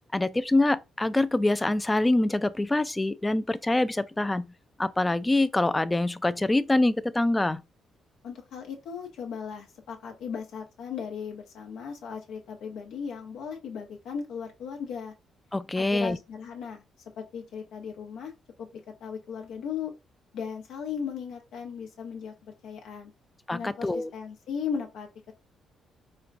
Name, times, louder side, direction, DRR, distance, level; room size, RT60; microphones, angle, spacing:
voice 1, 0.1-4.5 4.8-7.6 15.5-16.2 23.5-24.1, left 2 dB, 15° left, 0.3 m, -25 dB
voice 2, 8.2-15.1 15.8-16.8 17.2-18.3 18.6-18.7 19.0-19.9 20.3-23.1 23.5-25.3, left 6 dB, 80° left, 0.9 m, -37 dB
4.3 x 2.3 x 2.5 m
cardioid pair, 90°, 0 cm